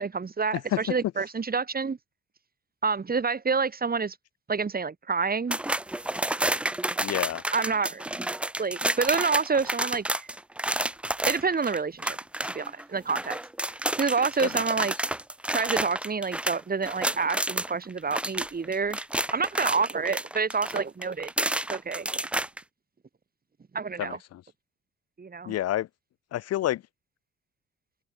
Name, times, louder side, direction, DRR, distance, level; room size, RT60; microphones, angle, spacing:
voice 1, 0.0-2.0 2.8-4.2 4.5-5.6 7.5-8.0 8.6-10.3 11.2-12.2 12.4-13.4 14.0-14.9 15.5-19.0 19.3-21.3 21.7-22.1 23.7-24.2 25.2-25.5, right 5 dB, 30° right, 1.8 m, -28 dB
sound 1, 5.5-17.7 18.0-22.6, right 1 dB, 5° right, 0.4 m, -30 dB
voice 2, 7.0-7.4 14.4-14.9 24.0-24.4 25.4-25.9 26.3-26.8, left 13 dB, 50° left, 0.7 m, -29 dB
hypercardioid pair, 45°, 32 cm